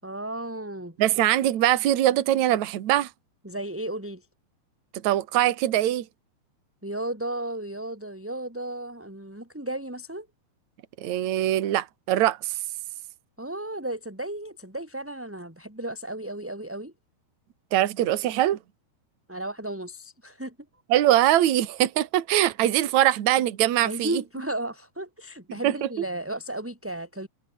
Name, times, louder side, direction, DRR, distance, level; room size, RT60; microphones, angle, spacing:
voice 1, 0.0-1.0 3.4-4.3 6.8-10.3 13.4-16.9 19.3-20.5 23.8-27.3, right 1 dB, 5° right, 4.9 m, -34 dB
voice 2, 1.0-3.1 5.0-6.1 11.0-12.6 17.7-18.6 20.9-24.2 25.6-25.9, right 13 dB, 55° right, 2.6 m, -22 dB
omnidirectional pair, 4.5 m